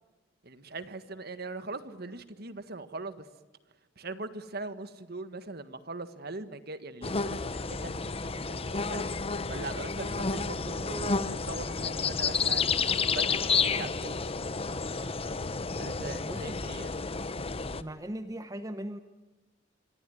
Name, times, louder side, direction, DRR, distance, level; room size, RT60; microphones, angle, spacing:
voice 1, 0.4-3.3 3.9-9.0 9.5-12.7 13.1-14.2 15.8-16.9, right 3 dB, 55° right, 11 dB, 1.7 m, -41 dB
sound 1, 7.0-17.8, left 4 dB, 30° left, 0.9 m, -31 dB
voice 2, 16.2-16.6 17.8-19.0, right 1 dB, 20° right, 9 dB, 1.0 m, -38 dB
27.0 x 23.5 x 9.2 m, 1.1 s
head